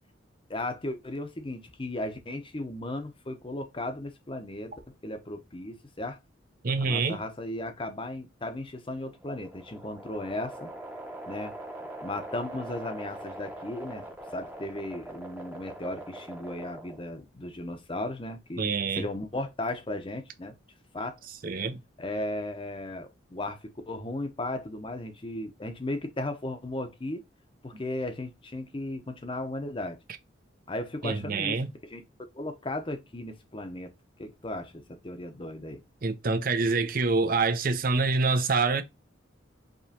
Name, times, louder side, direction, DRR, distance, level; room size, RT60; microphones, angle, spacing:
voice 1, 0.5-4.7 5.0-6.2 6.8-10.7 11.2-11.6 12.0-14.0 14.3-18.6 18.9-20.6 20.9-21.2 22.0-27.2 27.6-30.0 30.7-31.6 31.8-32.0 32.3-33.9 34.2-35.8, left 1 dB, 25° left, 0.7 m, -36 dB
voice 2, 6.6-7.2 18.6-19.1 21.4-21.8 31.0-31.7 36.0-38.8, right 4 dB, 45° right, 0.6 m, -26 dB
sound 1, 9.1-17.2, right 1 dB, 10° right, 0.8 m, -42 dB
5.1 x 3.0 x 2.8 m
head